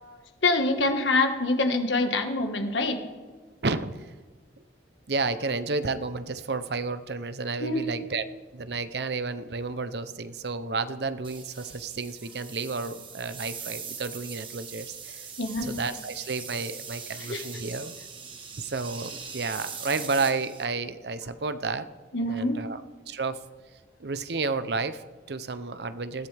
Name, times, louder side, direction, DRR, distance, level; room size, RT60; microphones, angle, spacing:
voice 1, 0.0-3.0 7.6-8.0 15.4-15.8 17.2-17.4 22.1-22.6, left 2 dB, 90° left, 5 dB, 1.7 m, -26 dB
voice 2, 3.6-4.0 5.1-8.3 8.5-15.3 15.6-17.9 18.6-21.9 22.3-23.4 24.0-26.3, right 4 dB, 65° right, 12 dB, 0.7 m, -31 dB
sound 1, 11.2-20.6, right 6 dB, 30° right, 1.3 m, -41 dB
20.5 x 15.0 x 3.5 m, 1.4 s
head